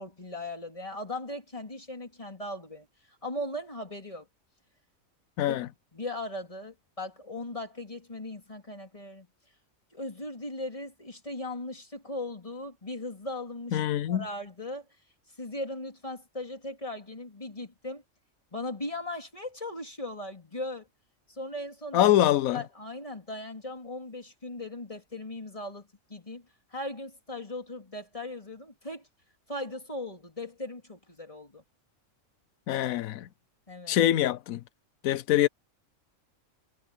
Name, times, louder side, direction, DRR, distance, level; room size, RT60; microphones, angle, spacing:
voice 1, 0.0-4.3 5.4-5.6 5.9-9.3 9.9-13.8 14.1-14.8 15.4-18.0 18.5-20.9 21.3-22.1 22.5-26.5 26.7-29.1 29.5-31.6 33.7-34.0, left 1 dB, 25° left, 3.1 m, -38 dB
voice 2, 5.4-5.7 13.7-14.3 21.9-22.6 32.7-33.3 33.9-34.6 35.0-35.5, left 12 dB, 85° left, 1.1 m, -24 dB
omnidirectional pair, 1.4 m